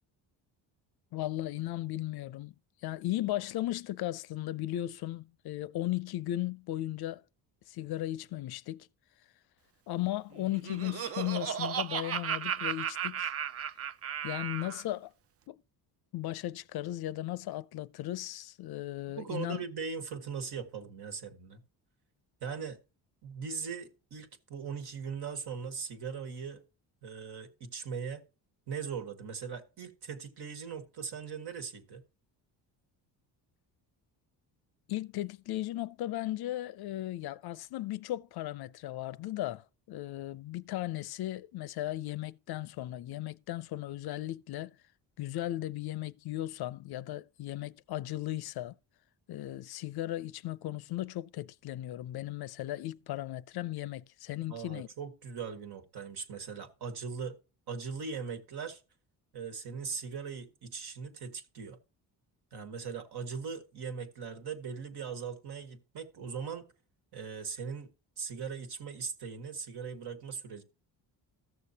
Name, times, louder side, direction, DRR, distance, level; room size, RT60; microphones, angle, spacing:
voice 1, 1.1-2.5 2.8-7.2 7.7-8.9 9.9-13.3 14.2-15.1 15.5-15.6 16.1-19.6 34.9-44.8 45.2-48.8 49.3-54.9, left 15 dB, 60° left, 0.5 m, -36 dB
Laughter, 10.4-14.8, right 9 dB, 35° right, 0.4 m, -35 dB
voice 2, 19.2-21.6 22.4-22.8 23.2-26.6 27.0-28.2 28.7-32.0 54.5-57.4 57.7-58.8 59.3-61.8 62.5-66.7 67.1-67.9 68.2-70.6, right 6 dB, 60° right, 1.7 m, -40 dB
14.5 x 6.7 x 2.8 m
cardioid pair, 90°, 43 cm